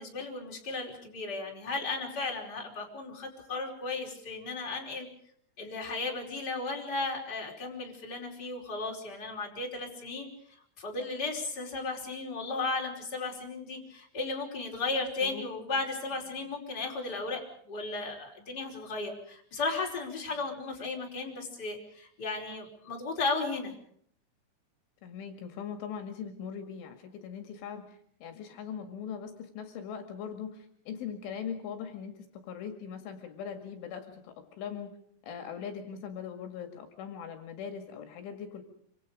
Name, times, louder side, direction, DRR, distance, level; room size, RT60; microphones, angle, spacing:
voice 1, 0.0-5.1 5.6-10.3 10.8-17.4 17.7-23.7, left 3 dB, 20° left, 1 dB, 4.9 m, -35 dB
voice 2, 25.0-34.9 35.2-38.6, left 7 dB, 70° left, 6 dB, 4.4 m, -40 dB
27.0 x 26.5 x 5.1 m, 0.62 s
omnidirectional pair, 5.9 m